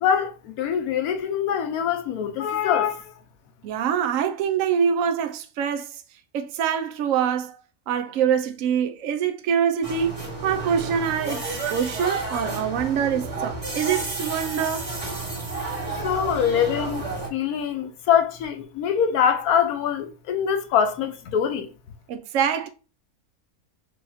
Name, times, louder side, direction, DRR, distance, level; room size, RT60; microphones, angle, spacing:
voice 1, 0.0-3.1 16.0-17.0 17.3-21.7, left 8 dB, 85° left, 1.2 m, -23 dB
voice 2, 3.6-6.0 6.3-7.6 7.9-14.9 22.1-22.7, right 8 dB, 70° right, 1.0 m, -25 dB
sound 1, 9.8-17.3, right 3 dB, 25° right, 1.4 m, -31 dB
6.3 x 3.0 x 2.7 m
omnidirectional pair, 1.5 m